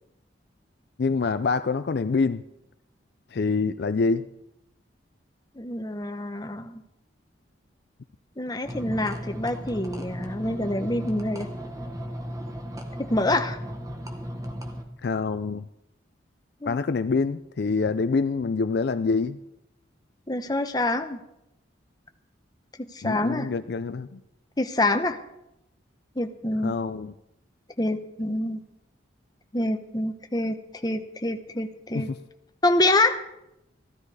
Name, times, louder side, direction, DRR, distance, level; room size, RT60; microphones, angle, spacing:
voice 1, 1.0-2.4 3.3-4.3 15.0-15.7 16.7-19.4 23.0-24.2 26.6-27.1 31.9-32.2, left 4 dB, 55° left, 12 dB, 0.4 m, -26 dB
voice 2, 5.6-6.8 8.4-11.5 13.0-13.6 16.6-16.8 20.3-21.2 22.8-23.5 24.6-25.2 26.2-26.8 27.8-28.6 29.5-32.1 32.6-33.2, left 2 dB, 20° left, 7 dB, 0.9 m, -26 dB
sound 1, 8.6-14.8, equal, 20° right, 1.2 m, -35 dB
14.5 x 13.0 x 4.9 m, 0.86 s
head